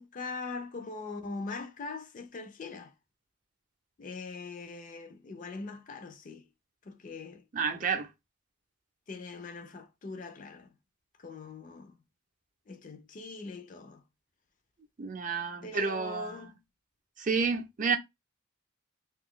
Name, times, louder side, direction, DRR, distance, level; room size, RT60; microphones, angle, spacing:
voice 1, 0.0-2.9 4.0-6.5 6.8-7.4 9.1-10.7 11.2-12.0 12.7-14.0 15.6-16.6, left 3 dB, 40° left, 0.5 m, -41 dB
voice 2, 7.5-8.1 15.0-16.3 17.2-18.0, right 5 dB, 40° right, 0.6 m, -30 dB
2.6 x 2.3 x 3.7 m
head